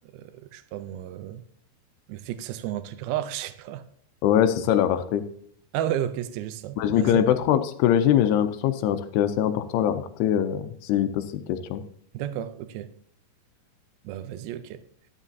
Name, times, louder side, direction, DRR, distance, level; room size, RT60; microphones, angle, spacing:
voice 1, 0.1-1.4 2.1-3.8 5.7-7.4 12.1-12.9 14.0-14.8, right 11 dB, 80° right, 2.2 m, -32 dB
voice 2, 4.2-5.2 6.8-11.2 11.5-11.8, left 10 dB, 85° left, 2.6 m, -22 dB
11.5 x 10.5 x 2.7 m
omnidirectional pair, 5.0 m